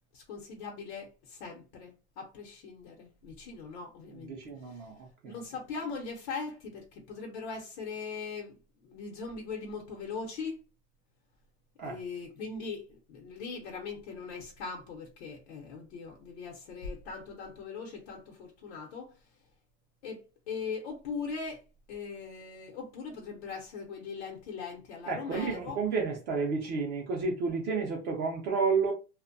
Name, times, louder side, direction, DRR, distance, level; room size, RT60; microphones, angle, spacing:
voice 1, 0.1-4.3 4.6-4.9 5.2-8.6 8.8-10.6 11.8-19.2 20.0-21.6 21.9-25.8, left 5 dB, 90° left, 0.8 m, -40 dB
voice 2, 4.1-4.9 5.2-5.4 11.8-12.0 25.1-28.9, right 4 dB, 30° right, 0.4 m, -31 dB
2.6 x 2.1 x 2.5 m
supercardioid pair, 165°, 32 cm